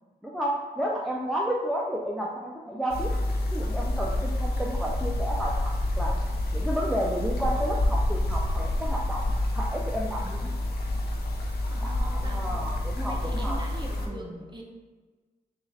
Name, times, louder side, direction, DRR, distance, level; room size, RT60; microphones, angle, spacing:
voice 1, 0.2-3.1 3.5-6.1 6.5-9.3 9.5-10.5 11.8-13.6 14.1-14.3, equal, ahead, -3 dB, 0.5 m, -31 dB
sound 1, 2.9-14.1, left 1 dB, 90° left, 0.5 m, -28 dB
voice 2, 11.7-12.7 13.0-14.6, right 1 dB, 30° right, -1 dB, 0.8 m, -42 dB
3.8 x 2.4 x 3.2 m, 1.4 s
cardioid pair, 55°, 16 cm